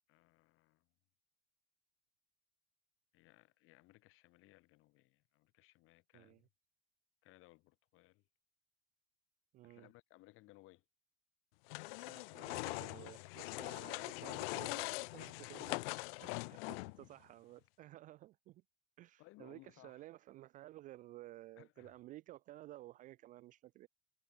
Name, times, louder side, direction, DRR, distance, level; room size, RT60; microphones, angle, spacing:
voice 1, 0.1-0.9 3.1-6.5 7.2-8.2 9.6-10.8 16.1-16.6 19.2-20.0 21.6-22.0, left 20 dB, 40° left, 3.8 m, -63 dB
voice 2, 9.5-9.9 12.1-16.3 16.7-18.6 19.0-23.9, right 16 dB, 25° right, 0.4 m, -55 dB
sound 1, 11.7-17.1, left 27 dB, 65° left, 0.5 m, -42 dB
cardioid pair, 170°, 31 cm